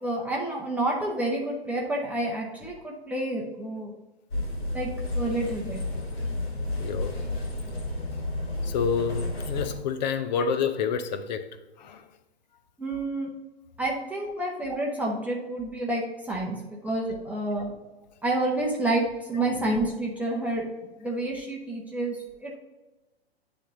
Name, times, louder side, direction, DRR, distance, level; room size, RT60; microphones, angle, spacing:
voice 1, 0.0-3.9 4.7-5.8 12.8-13.3 13.8-17.7 18.2-20.7 21.0-22.6, right 2 dB, 5° right, 0.9 m, -29 dB
sound 1, 4.3-9.8, left 1 dB, 70° left, 2.0 m, -31 dB
voice 2, 6.8-7.2 8.6-11.5 11.8-12.0, left 6 dB, 45° left, 0.7 m, -28 dB
9.7 x 3.5 x 3.8 m
figure-of-eight pair, 115°, 32 cm